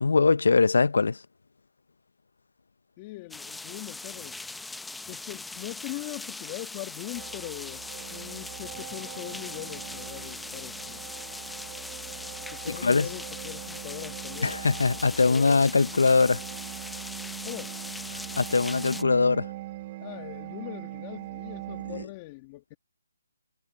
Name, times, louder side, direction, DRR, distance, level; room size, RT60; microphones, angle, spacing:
voice 1, 0.0-1.2 12.8-13.1 14.4-16.4 18.4-19.5 21.9-22.1, left 4 dB, 75° left, 0.6 m, -22 dB
voice 2, 3.0-4.4 5.1-7.8 8.1-11.0 12.4-14.5 15.2-15.6 17.4-17.8 20.0-22.8, left 20 dB, 25° left, 1.6 m, -41 dB
sound 1, 3.3-19.0, left 3 dB, 5° left, 0.7 m, -40 dB
sound 2, 7.1-22.1, right 16 dB, 30° right, 2.9 m, -41 dB
hypercardioid pair, 160°, 0 cm